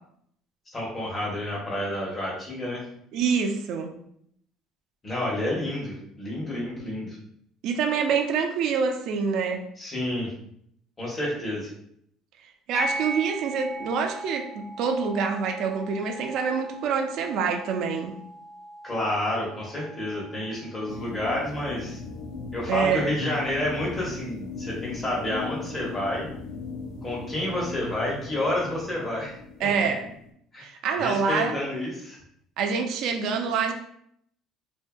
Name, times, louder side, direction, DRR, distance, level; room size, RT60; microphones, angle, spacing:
voice 1, 0.7-2.8 5.0-7.2 9.8-10.3 11.0-11.7 18.8-22.0 22.5-26.2 27.0-29.4 30.5-30.6 31.0-32.2, left 1 dB, 25° left, -4 dB, 0.9 m, -29 dB
voice 2, 3.1-3.9 7.6-9.6 12.7-18.2 22.7-23.0 29.6-30.0 30.6-31.6 32.6-33.7, right 6 dB, 65° right, 5 dB, 0.3 m, -26 dB
sound 1, 12.7-21.7, right 1 dB, 45° left, 0.7 m, -39 dB
sound 2, 20.9-30.3, left 3 dB, 85° left, 0.4 m, -38 dB
2.7 x 2.5 x 2.2 m, 0.70 s
cardioid pair, 130°, 0 cm